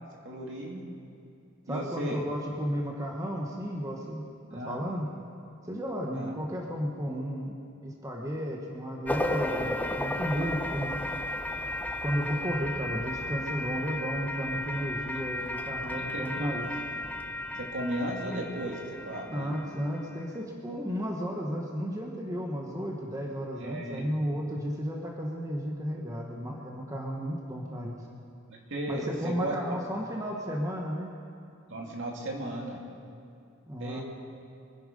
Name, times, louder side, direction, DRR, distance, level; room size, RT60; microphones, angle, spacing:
voice 1, 0.2-0.8 1.7-2.2 4.5-4.8 6.1-6.3 10.3-10.5 15.9-16.6 17.5-18.8 19.1-19.6 23.6-24.1 28.5-29.6 31.7-32.8 33.8-34.0, right 1 dB, 60° right, -1 dB, 2.7 m, -35 dB
voice 2, 1.7-5.1 5.7-10.9 12.0-16.7 19.3-28.0 28.9-31.1 33.7-34.0, equal, 15° right, -1 dB, 1.3 m, -33 dB
sound 1, 9.1-20.2, left 1 dB, 10° left, 0.7 m, -34 dB
24.5 x 10.5 x 5.4 m, 2.5 s
head